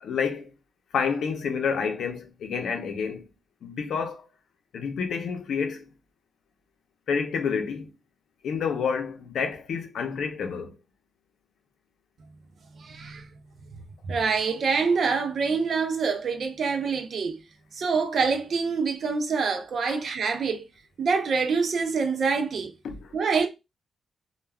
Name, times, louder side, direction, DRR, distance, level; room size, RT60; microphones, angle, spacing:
voice 1, 0.0-0.5 0.9-3.2 3.6-4.3 4.7-5.9 7.1-7.9 8.4-10.7 19.9-20.0 22.8-23.1, left 6 dB, 70° left, 0.6 m, -29 dB
voice 2, 12.9-13.2 14.1-17.4 17.8-20.6 21.0-22.7 23.1-23.5, right 5 dB, 50° right, 0.5 m, -25 dB
2.3 x 2.2 x 3.3 m
wide cardioid pair, 175°, 0 cm